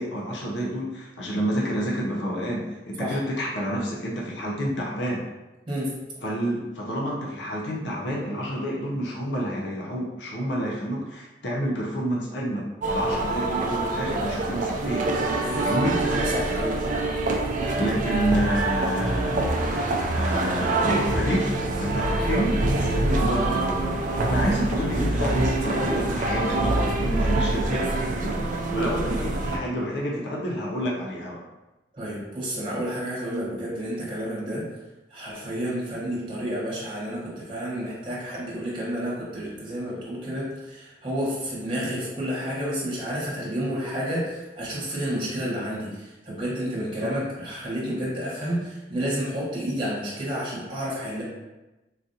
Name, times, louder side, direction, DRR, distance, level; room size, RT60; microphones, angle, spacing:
voice 1, 0.0-5.2 6.2-12.6 12.9-15.1 15.6-16.0 17.8-19.5 20.1-21.5 21.8-24.0 24.3-27.9 28.2-28.3 28.7-31.4 46.9-47.1, equal, 80° left, -3 dB, 0.6 m, -29 dB
sound 1, 12.8-29.6, right 2 dB, 45° right, 0.4 m, -25 dB
voice 2, 15.4-16.8 23.0-23.2 24.4-24.5 31.9-34.6 35.1-51.2, equal, 30° right, -6 dB, 1.2 m, -30 dB
3.9 x 2.5 x 2.7 m, 1.0 s
head